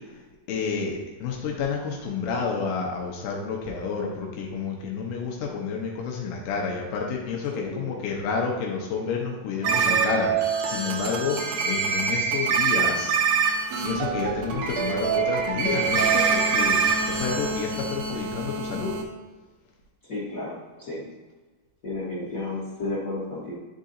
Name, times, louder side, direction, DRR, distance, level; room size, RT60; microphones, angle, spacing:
voice 1, 0.5-13.2 13.8-19.0, left 5 dB, 85° left, 0 dB, 2.4 m, -30 dB
voice 2, 7.5-8.0 20.1-21.0 21.8-23.5, left 2 dB, 70° left, -7 dB, 0.8 m, -32 dB
sound 1, 9.6-19.0, right 5 dB, 80° right, 1.6 m, -25 dB
10.5 x 3.7 x 2.7 m, 1.2 s
omnidirectional pair, 3.8 m